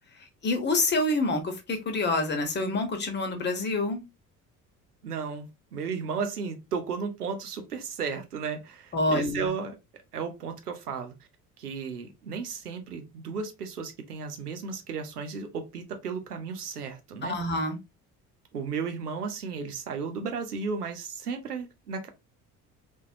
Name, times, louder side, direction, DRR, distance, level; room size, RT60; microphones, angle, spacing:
voice 1, 0.4-4.0 8.9-9.5 17.3-17.8, left 2 dB, 25° left, 0.9 m, -27 dB
voice 2, 5.0-9.8 10.1-11.1 11.6-17.4 18.5-22.1, right 5 dB, 85° right, 0.6 m, -34 dB
3.4 x 2.2 x 2.5 m
figure-of-eight pair, 55°, 45 cm